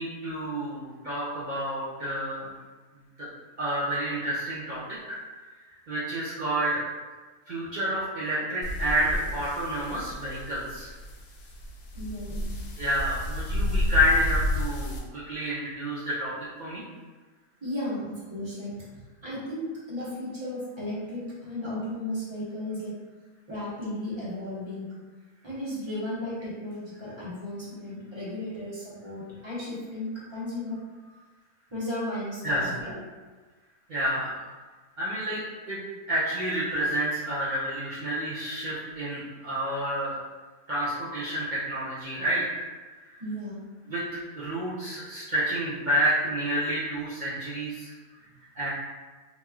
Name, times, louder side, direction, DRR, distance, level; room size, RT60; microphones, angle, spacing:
voice 1, 0.0-2.5 3.2-3.3 3.6-4.8 5.1-5.4 5.9-6.8 7.5-10.9 12.8-16.3 16.6-16.8 32.4-32.7 33.9-34.3 35.0-35.4 35.7-35.8 36.1-40.2 40.7-42.6 43.9-47.9 48.6-48.7, equal, 80° right, -9 dB, 0.4 m, -29 dB
sound 1, 8.6-15.0, left 1 dB, 80° left, 1.0 m, -31 dB
voice 2, 11.9-12.5 17.6-18.7 19.2-22.9 23.5-24.9 25.4-30.8 31.7-32.9 43.2-43.6, left 1 dB, 20° right, -9 dB, 0.9 m, -35 dB
3.0 x 2.9 x 2.3 m, 1.3 s
omnidirectional pair, 1.5 m